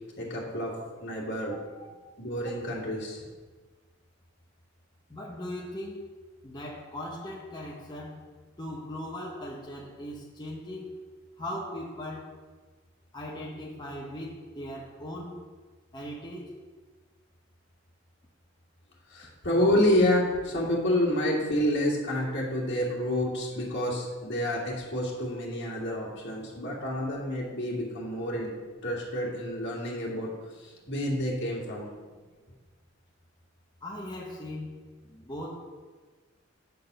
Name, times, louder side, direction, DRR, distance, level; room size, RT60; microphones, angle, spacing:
voice 1, 0.2-0.7 1.0-1.6 2.2-3.3 19.1-28.5 28.8-30.3 30.6-31.9, left 1 dB, 60° left, -3 dB, 2.2 m, -28 dB
voice 2, 1.5-1.9 5.1-6.1 6.4-8.2 8.6-11.0 11.4-12.3 13.1-15.4 15.9-16.5 33.8-35.5, left 1 dB, 20° left, -4 dB, 1.0 m, -39 dB
8.7 x 4.0 x 6.7 m, 1.4 s
head